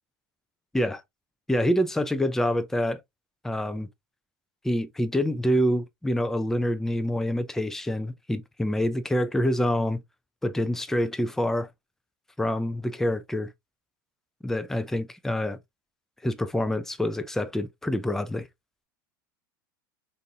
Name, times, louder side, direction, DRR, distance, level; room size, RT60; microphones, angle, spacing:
voice 1, 1.5-3.0 3.4-3.9 4.6-10.0 10.4-11.7 12.4-13.5 14.4-15.6 16.2-18.5, equal, 5° left, 0.4 m, -26 dB
3.6 x 2.6 x 2.7 m
hypercardioid pair, 90°, 11 cm